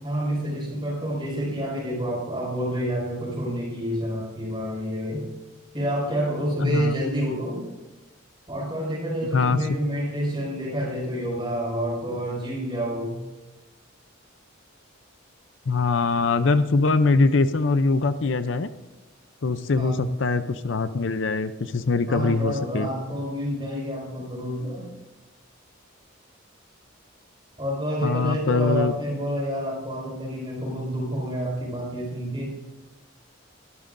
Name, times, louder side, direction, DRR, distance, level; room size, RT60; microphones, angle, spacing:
voice 1, 0.0-5.3 5.7-7.7 8.5-13.2 19.8-20.1 22.1-24.9 27.6-32.5, equal, 25° right, -3 dB, 5.3 m, -28 dB
voice 2, 6.6-6.9 9.3-9.6 15.7-18.7 19.4-22.9 28.0-28.9, left 3 dB, 65° left, 11 dB, 0.6 m, -22 dB
21.5 x 12.5 x 2.6 m, 1.1 s
head